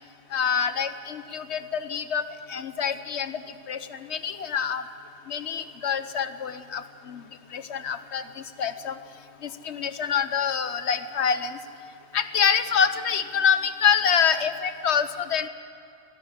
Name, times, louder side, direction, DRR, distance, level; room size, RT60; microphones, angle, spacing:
voice 1, 0.3-2.2 2.5-3.4 3.7-4.8 5.3-7.2 7.5-9.0 9.4-11.6 12.1-15.5, left 7 dB, 85° left, 11 dB, 1.3 m, -26 dB
23.0 x 14.0 x 9.7 m, 2.6 s
omnidirectional pair, 1.1 m